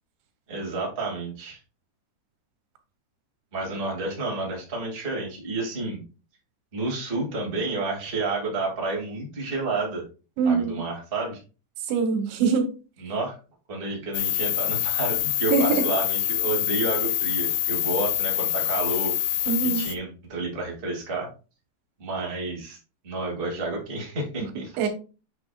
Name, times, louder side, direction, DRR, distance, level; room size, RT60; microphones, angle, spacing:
voice 1, 0.5-1.6 3.5-6.0 6.7-10.0 10.4-11.4 13.0-13.4 13.7-19.3 19.6-21.3 22.0-22.8 23.0-24.8, right 3 dB, 20° right, -1 dB, 1.6 m, -30 dB
voice 2, 10.4-10.8 11.9-12.7 15.5-15.8 19.5-19.9 24.8-24.9, right 5 dB, 90° right, 7 dB, 3.6 m, -23 dB
sound 1, 14.1-20.0, left 12 dB, 90° left, 2.9 m, -26 dB
8.0 x 7.2 x 2.4 m, 0.33 s
omnidirectional pair, 5.0 m